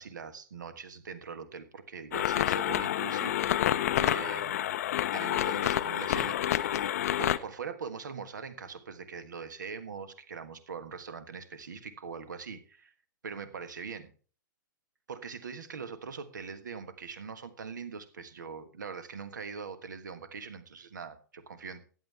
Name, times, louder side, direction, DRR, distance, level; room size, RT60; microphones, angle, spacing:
voice 1, 0.0-4.6 5.1-6.7 7.2-12.9 13.2-14.1 15.1-21.8, right 5 dB, 65° right, 12 dB, 1.3 m, -42 dB
sound 1, 2.1-7.4, left 12 dB, 50° left, 0.6 m, -28 dB
14.5 x 9.4 x 3.3 m, 0.39 s
figure-of-eight pair, 105°, 11 cm